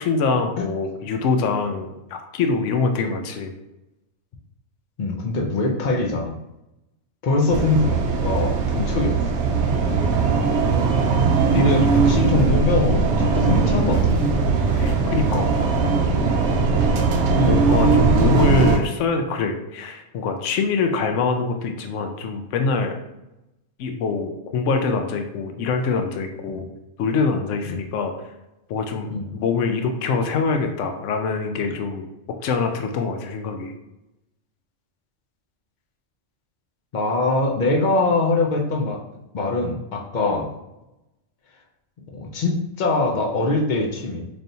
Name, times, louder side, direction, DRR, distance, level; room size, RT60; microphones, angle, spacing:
voice 1, 0.0-3.5 11.5-11.9 14.8-15.5 17.5-22.9 23.8-26.6 27.0-28.1 28.7-32.1 32.4-33.7 40.2-40.4, left 4 dB, 75° left, 5 dB, 0.9 m, -24 dB
voice 2, 5.0-6.4 7.2-9.2 11.4-14.3 17.3-17.7 26.5-26.6 27.7-27.8 29.1-29.3 36.9-39.0 39.3-40.5 42.1-44.2, left 2 dB, 50° left, 0 dB, 0.6 m, -23 dB
sound 1, 7.5-18.8, right 4 dB, 70° right, 0.9 m, -19 dB
4.0 x 3.4 x 2.6 m, 0.93 s
omnidirectional pair, 1.3 m